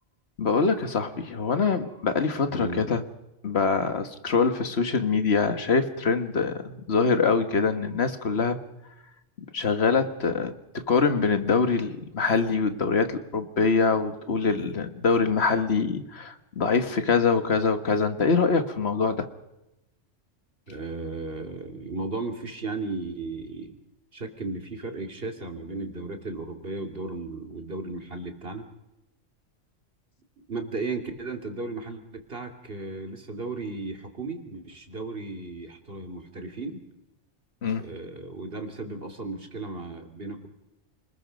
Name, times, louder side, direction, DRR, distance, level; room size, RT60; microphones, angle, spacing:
voice 1, 0.4-3.0 3.4-8.6 9.5-10.5 10.9-19.3 37.6-37.8, left 4 dB, 60° left, 9 dB, 1.8 m, -24 dB
voice 2, 2.5-2.9 20.7-23.8 24.1-28.7 30.5-36.8 37.8-40.5, right 3 dB, 50° right, 5 dB, 2.8 m, -35 dB
29.5 x 20.5 x 5.2 m, 0.94 s
omnidirectional pair, 1.2 m